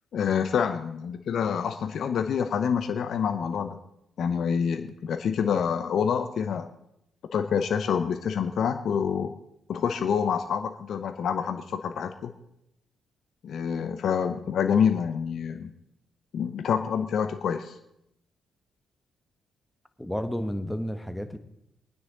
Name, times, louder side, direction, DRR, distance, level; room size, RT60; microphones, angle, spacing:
voice 1, 0.1-3.8 4.2-6.7 7.3-9.3 9.7-12.3 13.4-15.7 16.3-17.7, left 7 dB, 60° left, 7 dB, 0.8 m, -27 dB
voice 2, 20.0-21.4, equal, 5° left, 9 dB, 1.4 m, -31 dB
23.5 x 9.6 x 4.0 m, 0.80 s
hypercardioid pair, 45°, 0 cm